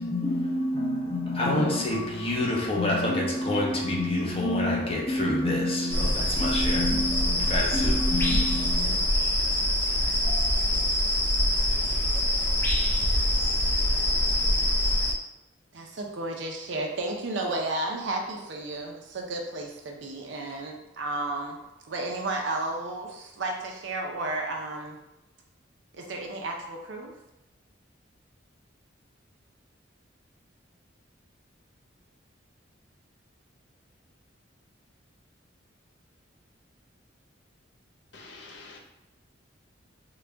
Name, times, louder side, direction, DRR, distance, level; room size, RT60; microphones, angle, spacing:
voice 1, 0.0-9.0, left 1 dB, 30° left, -2 dB, 0.7 m, -27 dB
sound 1, 5.9-15.1, left 1 dB, 10° left, 0.4 m, -24 dB
voice 2, 15.7-21.6 21.8-25.0 25.9-27.1, right 2 dB, 70° right, 1 dB, 0.6 m, -33 dB
voice 3, 38.1-38.8, left 3 dB, 65° left, 0 dB, 0.6 m, -46 dB
3.9 x 2.3 x 3.3 m, 0.91 s
head